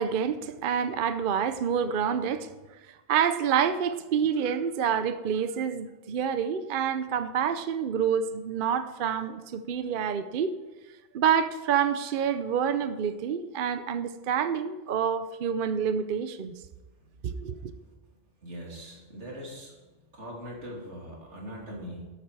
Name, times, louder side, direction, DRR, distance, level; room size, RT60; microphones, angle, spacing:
voice 1, 0.0-2.5 3.1-10.5 11.1-16.5 17.2-17.7, right 7 dB, 55° right, 11 dB, 0.7 m, -27 dB
voice 2, 17.2-17.9 18.4-22.1, equal, 90° right, -2 dB, 3.2 m, -42 dB
12.0 x 8.6 x 4.7 m, 1.2 s
omnidirectional pair, 1.2 m